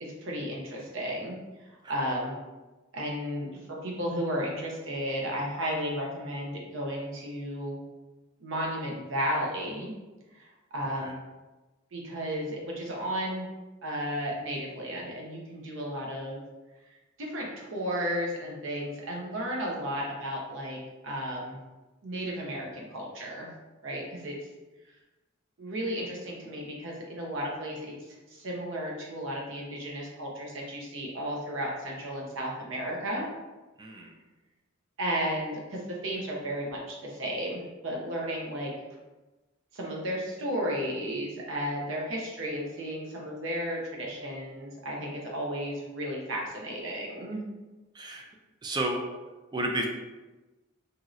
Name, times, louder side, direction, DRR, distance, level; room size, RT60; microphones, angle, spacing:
voice 1, 0.0-1.4 1.9-2.3 2.9-7.8 8.4-9.9 10.3-11.2 11.9-13.5 13.8-16.4 17.2-20.8 21.0-21.6 22.0-23.5 23.8-24.3 25.6-33.3 35.0-38.7 39.7-47.4, equal, 70° right, -2 dB, 0.7 m, -33 dB
voice 2, 33.8-34.1 47.9-48.3 48.6-49.1 49.5-49.9, right 1 dB, 20° right, 2 dB, 0.3 m, -31 dB
3.0 x 2.7 x 2.4 m, 1.1 s
head